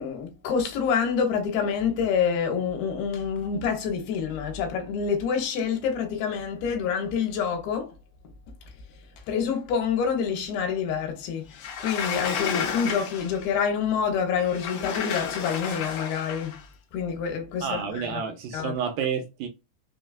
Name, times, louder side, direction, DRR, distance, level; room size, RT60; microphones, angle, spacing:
voice 1, 0.0-7.9 9.3-16.6 16.9-18.2 18.5-18.7, left 6 dB, 80° left, 2.8 m, -27 dB
Sliding door, 11.5-13.5 14.4-16.6, left 7 dB, 65° left, 1.9 m, -32 dB
voice 2, 17.6-19.5, right 7 dB, 75° right, 2.1 m, -30 dB
6.1 x 2.3 x 2.4 m
omnidirectional pair, 4.4 m